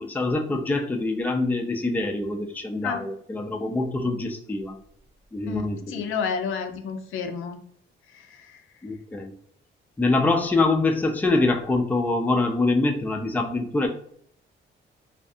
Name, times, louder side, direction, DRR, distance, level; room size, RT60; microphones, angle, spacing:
voice 1, 0.0-4.8 5.3-6.0 8.8-9.3 10.0-13.9, left 2 dB, 10° left, 3 dB, 0.3 m, -24 dB
voice 2, 5.5-7.6 8.1-8.6, left 6 dB, 85° left, 7 dB, 0.4 m, -31 dB
2.4 x 2.2 x 2.6 m, 0.63 s
cardioid pair, 105°, 21 cm